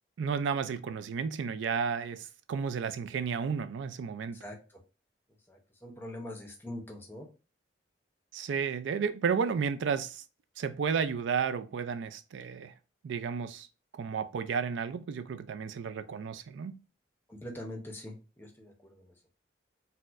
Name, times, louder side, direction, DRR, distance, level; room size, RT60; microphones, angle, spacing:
voice 1, 0.2-4.4 8.3-10.2 10.6-12.7 13.0-13.7 13.9-16.8, right 6 dB, 80° right, 0.3 m, -32 dB
voice 2, 5.5-7.3 17.3-19.1, left 1 dB, 10° left, 0.7 m, -43 dB
4.2 x 2.1 x 2.4 m
head